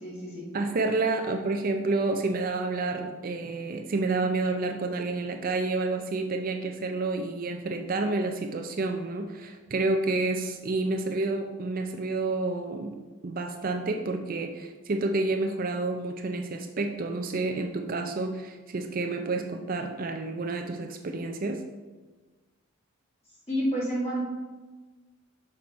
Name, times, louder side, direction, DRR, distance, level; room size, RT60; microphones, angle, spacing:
voice 1, 0.0-0.4 23.5-24.2, equal, 30° left, -5 dB, 2.0 m, -29 dB
voice 2, 0.5-21.6, right 3 dB, 40° right, 5 dB, 0.4 m, -29 dB
6.1 x 4.4 x 5.1 m, 1.3 s
head